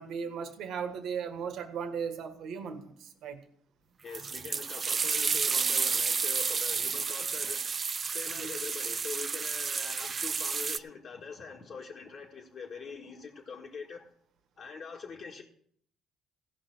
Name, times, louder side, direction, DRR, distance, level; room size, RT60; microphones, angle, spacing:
voice 1, 0.0-3.4 8.3-8.5, right 6 dB, 70° right, 7 dB, 1.5 m, -37 dB
voice 2, 4.0-14.1 14.6-15.4, left 5 dB, 55° left, -2 dB, 1.6 m, -43 dB
sound 1, 4.1-10.8, right 5 dB, 40° right, 0.4 m, -31 dB
16.0 x 5.7 x 6.0 m, 0.64 s
supercardioid pair, 80°, 0 cm